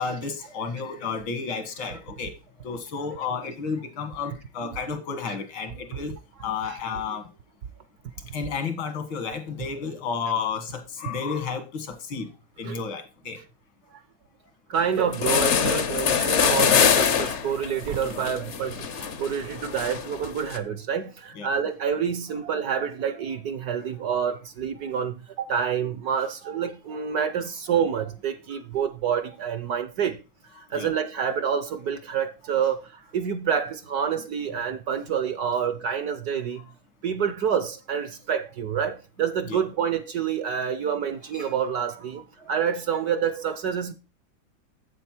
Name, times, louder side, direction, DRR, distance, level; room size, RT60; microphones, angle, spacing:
voice 1, 0.0-2.3 2.6-6.1 6.4-7.2 8.3-12.3 12.6-13.4 18.1-18.5 21.4-21.5 30.7-30.9 39.5-39.6 41.3-41.5 42.4-42.5, left 5 dB, 80° left, 2.4 m, -32 dB
voice 2, 14.7-30.2 30.5-36.6 37.0-43.9, right 7 dB, 65° right, 1.0 m, -28 dB
sound 1, 14.8-14.9 15.1-20.6, left 7 dB, 60° left, 0.7 m, -24 dB
7.9 x 7.8 x 4.4 m
omnidirectional pair, 2.1 m